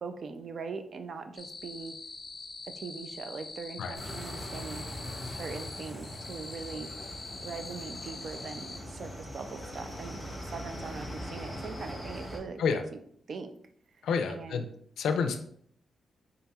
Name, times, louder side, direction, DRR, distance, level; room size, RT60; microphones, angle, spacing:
voice 1, 0.0-1.9 2.8-4.9 5.2-6.9 7.4-10.2 10.5-13.0 13.3-13.5 14.3-14.6, right 4 dB, 45° right, 8 dB, 0.4 m, -41 dB
sound 1, 1.4-8.8, left 3 dB, 25° left, 0.6 m, -44 dB
sound 2, 3.9-12.4, equal, 10° right, 1.4 m, -41 dB
voice 2, 14.0-14.7 15.0-15.4, left 5 dB, 90° left, 7 dB, 0.4 m, -29 dB
4.2 x 3.8 x 2.3 m, 0.64 s
wide cardioid pair, 160°, 0 cm